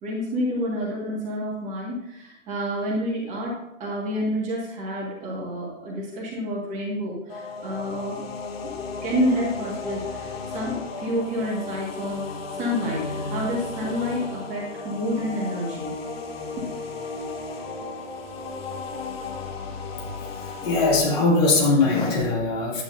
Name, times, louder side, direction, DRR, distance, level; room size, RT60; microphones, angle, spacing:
voice 1, 0.0-8.2 8.6-8.7 9.0-12.2 12.5-15.9 16.6-16.7, equal, 20° right, -4 dB, 1.9 m, -29 dB
sound 1, 7.3-21.0, left 4 dB, 50° left, 1.4 m, -34 dB
voice 2, 20.6-22.8, left 3 dB, 30° left, -4 dB, 2.6 m, -20 dB
10.0 x 8.6 x 2.7 m, 0.84 s
figure-of-eight pair, 135°, 40 cm